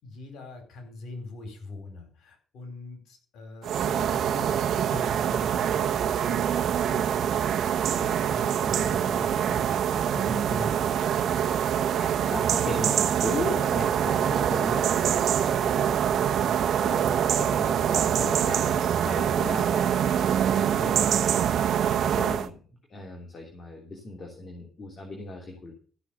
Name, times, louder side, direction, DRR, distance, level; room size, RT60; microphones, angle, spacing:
voice 1, 0.0-4.6 4.9-11.2, left 2 dB, 75° left, 6 dB, 4.4 m, -43 dB
sound 1, 3.6-22.5, right 9 dB, 70° right, 1.0 m, -25 dB
voice 2, 8.6-9.7 11.7-20.0 20.5-21.2 22.0-22.5 22.9-25.7, left 2 dB, 40° left, 1 dB, 3.2 m, -38 dB
14.5 x 6.2 x 7.1 m, 0.42 s
cardioid pair, 90°, 0 cm